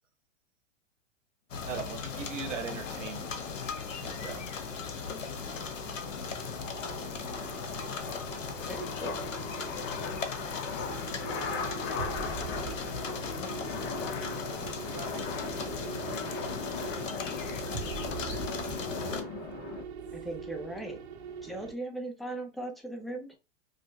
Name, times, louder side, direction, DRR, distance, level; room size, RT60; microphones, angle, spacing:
sound 1, 1.5-19.2, left 5 dB, 85° left, 0.8 m, -38 dB
voice 1, 1.6-3.3 4.0-4.6, right 6 dB, 75° right, 1.2 m, -39 dB
sound 2, 3.4-21.7, right 6 dB, 60° right, 0.9 m, -43 dB
sound 3, 4.8-19.8, left 5 dB, 35° left, 0.8 m, -39 dB
voice 2, 8.7-9.2 20.1-21.0 21.4-23.3, right 2 dB, ahead, 0.4 m, -38 dB
voice 3, 14.0-19.9, right 6 dB, 30° right, 0.9 m, -52 dB
5.0 x 2.2 x 2.3 m
hypercardioid pair, 110°, 37 cm